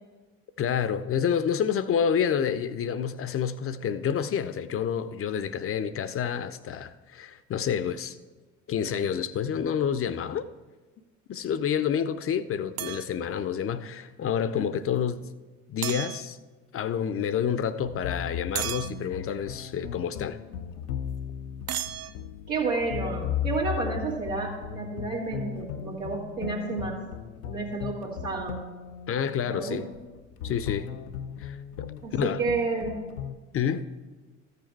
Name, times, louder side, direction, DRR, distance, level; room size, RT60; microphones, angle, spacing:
voice 1, 0.6-8.2 8.7-10.4 11.3-15.3 15.7-16.4 16.7-20.4 29.1-29.9 30.4-30.9 31.4-32.4 33.5-33.9, left 8 dB, 35° left, 0.6 m, -28 dB
sound 1, 12.8-13.1 15.8-16.2 18.5-18.9 21.7-22.1, right 12 dB, 40° right, 0.5 m, -32 dB
sound 2, 17.8-33.4, left 8 dB, 80° left, 0.6 m, -37 dB
voice 2, 22.5-27.0 27.4-28.6 29.5-29.8 32.0-32.9, right 3 dB, 90° right, 2.0 m, -30 dB
13.5 x 6.7 x 4.5 m
figure-of-eight pair, 55°, 39 cm